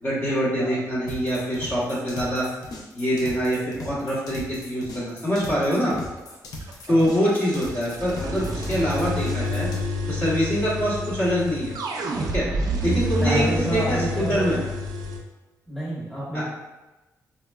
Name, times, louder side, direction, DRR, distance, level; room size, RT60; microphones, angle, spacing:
voice 1, 0.0-2.4 2.9-5.9 6.9-9.7 10.1-11.7 12.3-12.5 12.8-14.6 16.3-16.4, equal, 35° left, -8 dB, 0.9 m, -24 dB
sound 1, 1.1-9.8, left 1 dB, 80° left, 0.5 m, -39 dB
sound 2, 6.6-15.2, equal, 85° right, 0.4 m, -28 dB
voice 2, 13.2-14.6 15.7-16.4, right 1 dB, 5° left, -8 dB, 1.1 m, -29 dB
4.1 x 2.1 x 2.2 m, 1.0 s
wide cardioid pair, 135°, 6 cm